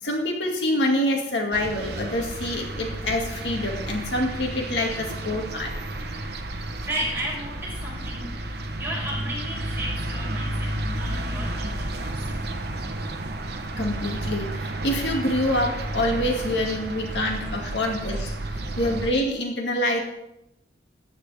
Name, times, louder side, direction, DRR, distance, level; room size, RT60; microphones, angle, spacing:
voice 1, 0.0-5.7 13.8-20.0, left 1 dB, 80° left, 1 dB, 2.2 m, -26 dB
sound 1, 1.5-19.1, right 1 dB, 60° right, 1.1 m, -32 dB
voice 2, 6.8-12.2, right 1 dB, 15° right, -6 dB, 5.3 m, -34 dB
14.5 x 10.0 x 3.5 m, 0.86 s
head